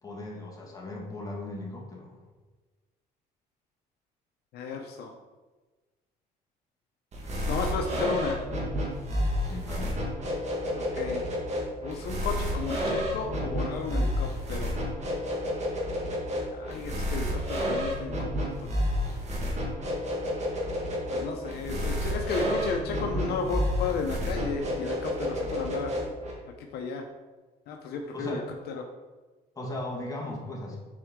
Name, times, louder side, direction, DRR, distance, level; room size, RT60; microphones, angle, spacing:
voice 1, 0.0-2.2 9.4-10.0 28.1-28.4 29.5-30.8, left 1 dB, 20° left, -2 dB, 1.8 m, -37 dB
voice 2, 4.5-5.1 7.5-8.5 10.7-11.2 11.8-14.9 16.5-18.7 21.1-25.9 26.5-27.1 27.7-28.8, left 4 dB, 75° left, 3 dB, 0.7 m, -33 dB
sound 1, 7.1-26.3, equal, 40° right, 1.7 m, -30 dB
7.6 x 4.4 x 3.7 m, 1.2 s
cardioid pair, 110°, 17 cm